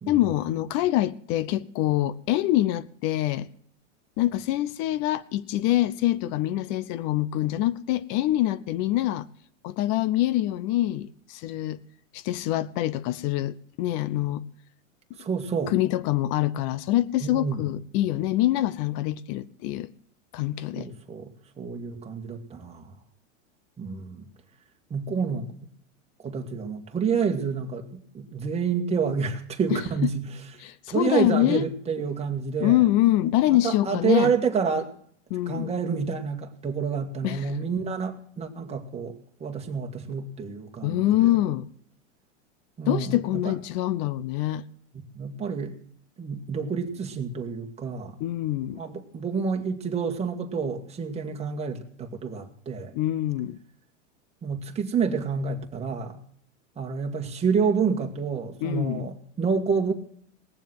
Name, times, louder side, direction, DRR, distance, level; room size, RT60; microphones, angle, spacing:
voice 1, 0.1-3.5 4.2-9.3 9.6-11.8 12.1-14.4 15.7-19.9 20.3-20.9 29.7-29.8 30.6-31.6 32.6-34.3 35.3-35.7 37.2-37.4 40.8-41.7 42.9-44.6 48.2-48.8 52.9-53.6 58.6-59.1, left 14 dB, 45° left, 0.7 m, -25 dB
voice 2, 15.2-15.8 17.2-17.7 20.7-22.9 23.8-24.3 24.9-25.5 26.2-30.4 30.9-32.8 33.5-34.9 35.5-41.4 42.8-43.6 45.1-45.8 46.2-48.2 48.7-52.9 54.4-56.2 56.8-59.9, right 6 dB, 15° right, 1.7 m, -29 dB
18.5 x 7.3 x 7.7 m
hypercardioid pair, 125°, 38 cm